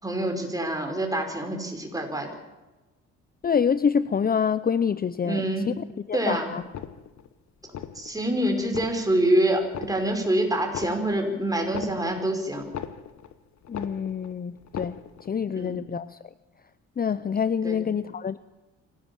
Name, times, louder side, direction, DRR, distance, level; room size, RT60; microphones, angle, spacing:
voice 1, 0.0-2.3 5.2-5.7 6.1-6.5 8.0-12.6 15.5-15.8 17.6-17.8, right 1 dB, 10° right, 4 dB, 5.6 m, -26 dB
voice 2, 3.4-6.6 13.7-15.0 15.3-16.2 17.0-18.4, left 7 dB, 30° left, 15 dB, 0.7 m, -26 dB
sound 1, 6.6-7.3 7.7-8.3 8.6-9.3 9.7-10.3 10.6-13.3 13.6-14.3 14.6-15.3 15.6-15.8, left 9 dB, 65° left, 1.6 m, -39 dB
25.5 x 17.5 x 7.4 m, 1.1 s
cardioid pair, 90°, 30 cm